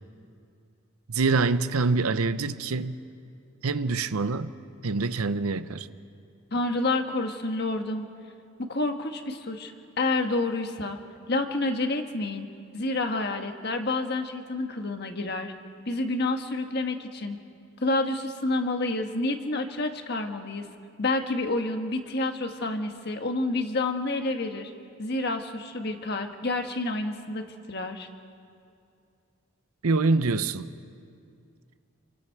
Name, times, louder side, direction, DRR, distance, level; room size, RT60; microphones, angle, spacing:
voice 1, 1.1-3.0 3.6-4.5 4.8-5.9 29.8-30.7, right 3 dB, 85° right, 0.7 m, -25 dB
voice 2, 6.5-8.1 8.6-9.7 10.0-11.0 11.3-12.5 12.7-15.5 15.9-17.4 17.8-20.7 21.0-24.7 25.0-28.1, left 2 dB, 50° left, 1.4 m, -29 dB
28.5 x 24.5 x 4.6 m
head